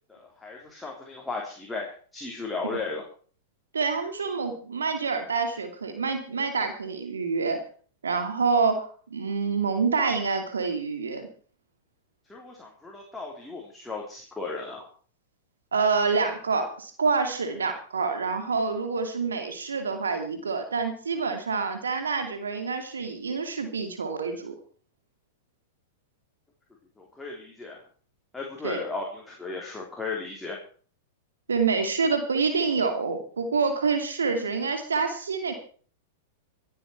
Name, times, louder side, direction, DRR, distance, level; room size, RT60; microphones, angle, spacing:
voice 1, 0.1-3.0 12.3-14.8 27.0-27.8 28.3-30.6, left 3 dB, 10° left, -2 dB, 3.4 m, -35 dB
voice 2, 3.7-7.6 8.0-11.3 15.7-24.5 28.6-28.8 31.5-35.5, right 4 dB, 80° right, 8 dB, 2.5 m, -27 dB
25.0 x 8.4 x 4.5 m, 0.43 s
hypercardioid pair, 100°, 0 cm